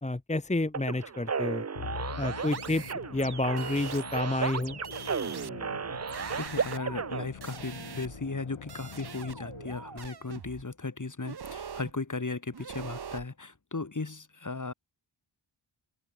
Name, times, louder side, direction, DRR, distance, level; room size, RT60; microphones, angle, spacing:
voice 1, 0.0-1.6 2.2-2.8 3.1-4.8, left 2 dB, 15° left, 1.2 m, -29 dB
sound 1, 0.7-7.2, right 6 dB, 30° right, 0.7 m, -34 dB
Musical instrument, 1.8-10.3, left 7 dB, 75° left, 1.7 m, -45 dB
sound 2, 2.5-4.2 4.6-8.4 8.7-10.6 11.2-11.9 12.5-13.3, right 7 dB, 50° right, 1.1 m, -43 dB
voice 2, 6.4-14.7, left 3 dB, 40° left, 3.3 m, -36 dB
open air
cardioid pair, 50°, 49 cm